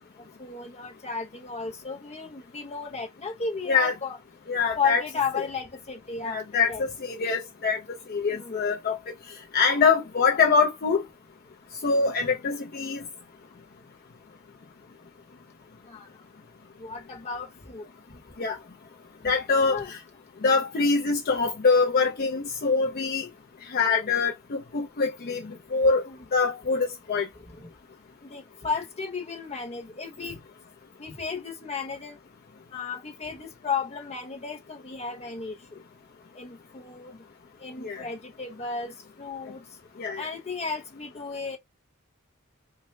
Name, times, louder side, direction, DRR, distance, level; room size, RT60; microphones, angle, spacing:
voice 1, 0.4-4.2 4.8-6.8 8.3-8.6 15.9-16.1 16.8-17.8 19.6-19.9 26.1-26.2 27.5-27.6 28.2-30.4 31.0-32.2 32.7-35.8 36.3-37.2 37.6-39.6 40.2-41.6, left 5 dB, 30° left, 0.9 m, -34 dB
voice 2, 4.5-5.0 6.2-7.8 8.1-9.0 9.5-11.0 11.8-13.0 18.4-18.6 19.2-20.0 20.4-23.3 23.6-27.3 37.8-38.1 40.0-40.3, left 4 dB, 45° left, 0.5 m, -24 dB
4.4 x 2.1 x 3.2 m
head